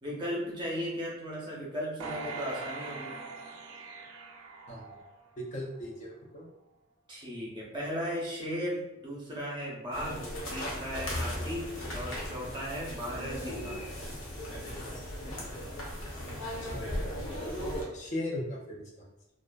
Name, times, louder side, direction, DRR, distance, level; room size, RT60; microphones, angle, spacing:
voice 1, 0.0-3.1 7.1-13.8, equal, 20° right, -4 dB, 0.5 m, -36 dB
sound 1, 2.0-5.4 5.9-6.0, right 4 dB, 90° right, 0.4 m, -42 dB
voice 2, 5.4-6.5 16.6-16.9 17.9-19.1, left 1 dB, 35° left, -1 dB, 0.3 m, -38 dB
sound 2, 9.9-17.8, equal, 65° left, 0.7 m, -37 dB
2.3 x 2.3 x 2.2 m, 0.90 s
head